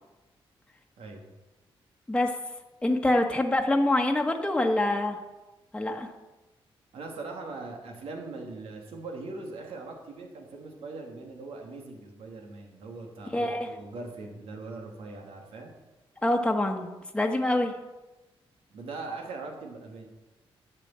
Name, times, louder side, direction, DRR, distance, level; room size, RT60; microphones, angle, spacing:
voice 1, 2.8-5.2 5.7-6.1 13.3-13.7 16.2-17.7, left 1 dB, 10° left, 2 dB, 1.3 m, -25 dB
voice 2, 6.9-15.7 18.7-20.0, right 3 dB, 85° right, 1 dB, 2.9 m, -41 dB
12.5 x 6.8 x 8.7 m, 1.1 s
cardioid pair, 110°, 10 cm